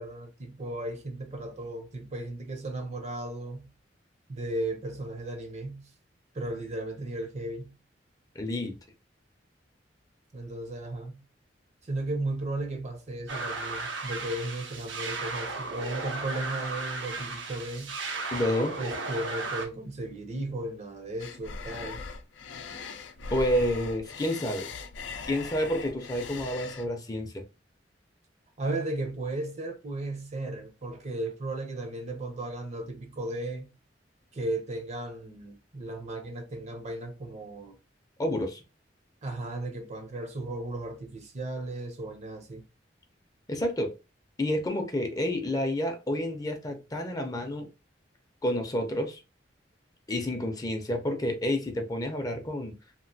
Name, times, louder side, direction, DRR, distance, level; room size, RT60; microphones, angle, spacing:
voice 1, 0.0-3.7 4.3-5.9 6.3-7.7 10.3-11.2 11.9-18.0 18.8-22.0 28.6-33.7 34.3-37.8 39.2-42.6, right 2 dB, 40° right, 0.6 m, -35 dB
voice 2, 8.4-8.8 18.3-18.8 23.3-24.7 25.2-27.4 38.2-38.6 43.5-44.0 44.4-47.7 48.4-49.2 50.1-52.7, left 1 dB, 20° left, 0.5 m, -29 dB
sound 1, 13.3-19.7, right 3 dB, 85° right, 0.6 m, -35 dB
sound 2, 21.2-26.9, left 4 dB, 85° left, 0.5 m, -40 dB
2.9 x 2.5 x 2.7 m
head